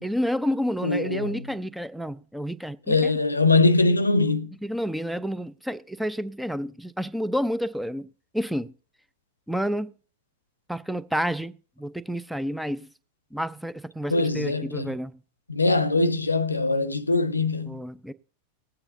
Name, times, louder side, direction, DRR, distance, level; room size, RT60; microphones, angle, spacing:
voice 1, 0.0-3.1 4.6-8.7 9.5-9.9 10.7-12.9 13.3-15.2 17.7-18.1, equal, ahead, 0.5 m, -30 dB
voice 2, 0.8-1.3 2.9-4.6 14.1-14.9 15.5-17.8, left 3 dB, 80° left, 0.7 m, -22 dB
19.0 x 8.8 x 2.7 m
figure-of-eight pair, 90°, 0 cm